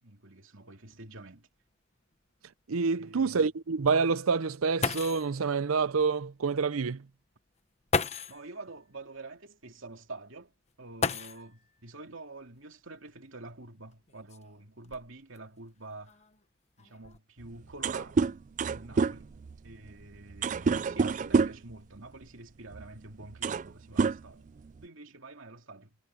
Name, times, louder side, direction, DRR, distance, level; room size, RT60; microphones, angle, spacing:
voice 1, 0.0-1.5 3.0-3.4 8.3-16.2 16.8-19.3 19.6-24.4 24.8-26.0, right 2 dB, 70° right, 2.6 m, -47 dB
sound 1, 0.9-1.0 1.4-1.5 2.1-2.2 4.5-4.6 4.8-5.4 6.6-6.7 7.9-8.5 10.9-11.7 13.1-13.2 13.9-15.4 16.1-16.4 16.8-17.2, left 4 dB, 30° left, 1.1 m, -33 dB
voice 2, 2.7-7.1, right 5 dB, 90° right, 0.6 m, -27 dB
sound 2, 17.4-17.5 17.7-21.7 22.7-22.9 23.2-23.7 24.0-24.8, right 4 dB, 35° right, 0.3 m, -28 dB
head